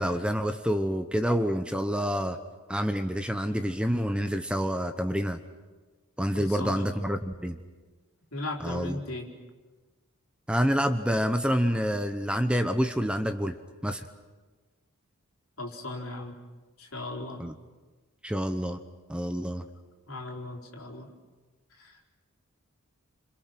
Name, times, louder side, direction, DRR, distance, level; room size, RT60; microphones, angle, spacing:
voice 1, 0.0-2.4 2.7-5.4 6.2-7.6 8.6-9.0 10.5-13.6 13.8-14.1 17.4-17.5 18.2-18.8 19.1-19.7, equal, 5° right, 8 dB, 0.9 m, -27 dB
voice 2, 6.3-6.9 8.3-9.3 15.6-16.4 16.8-17.4 20.1-21.1 21.8-22.1, left 2 dB, 70° left, 0 dB, 4.2 m, -37 dB
29.5 x 27.0 x 6.0 m, 1.3 s
head